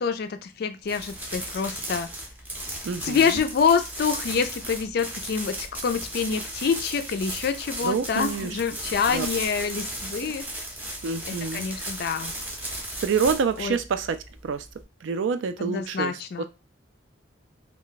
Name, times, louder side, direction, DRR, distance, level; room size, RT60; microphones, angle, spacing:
voice 1, 0.0-2.1 3.0-5.5 5.8-10.4 11.5-12.3 13.6-13.8 15.6-16.4, left 6 dB, 50° left, 9 dB, 0.3 m, -26 dB
sound 1, 0.8-14.8, right 1 dB, 10° right, 0.5 m, -36 dB
voice 2, 2.8-3.4 7.8-8.6 9.1-9.3 10.2-10.3 11.0-12.0 13.0-14.2 14.4-14.7 15.0-16.4, right 5 dB, 70° right, 10 dB, 0.3 m, -27 dB
2.3 x 2.1 x 3.9 m, 0.27 s
head